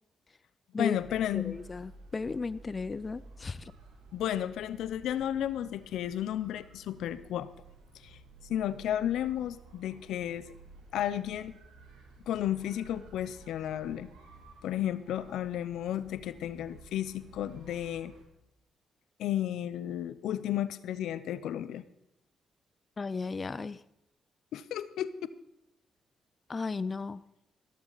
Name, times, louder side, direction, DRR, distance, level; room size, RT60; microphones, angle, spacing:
voice 1, 0.8-1.6 4.1-7.5 8.0-8.2 8.5-10.5 10.9-11.6 12.3-14.1 14.6-18.1 19.2-21.8 24.5-25.2, left 11 dB, 80° left, 15 dB, 0.7 m, -33 dB
sound 1, 0.9-18.2, right 3 dB, 85° right, 2.5 m, -54 dB
voice 2, 1.3-3.7 23.0-23.8 26.5-27.2, left 4 dB, 35° left, 17 dB, 0.5 m, -35 dB
14.5 x 13.5 x 4.0 m, 0.86 s
supercardioid pair, 65°, 0 cm